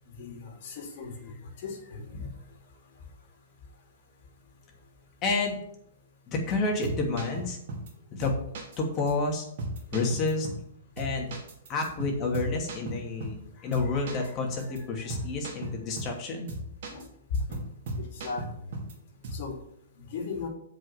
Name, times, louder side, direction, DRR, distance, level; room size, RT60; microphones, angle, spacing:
voice 1, 0.1-2.3 16.9-17.1 17.3-17.6 18.0-18.4 19.3-19.5 20.0-20.5, left 4 dB, 55° left, 2 dB, 2.9 m, -36 dB
voice 2, 5.2-5.6 6.3-7.6 8.1-8.4 8.8-9.4 9.9-10.5 11.0-11.3 11.7-16.5, left 3 dB, 30° left, 1 dB, 2.6 m, -29 dB
sound 1, 6.6-7.9 8.2-8.8 9.1-9.2 9.6-10.7 11.0-13.5 13.7-14.3 14.6-14.8 15.1-16.2 16.5-17.1 17.3-18.9 19.2-19.5, right 1 dB, 55° right, 2.4 m, -37 dB
7.5 x 5.4 x 7.1 m, 0.72 s
hypercardioid pair, 120°, 0 cm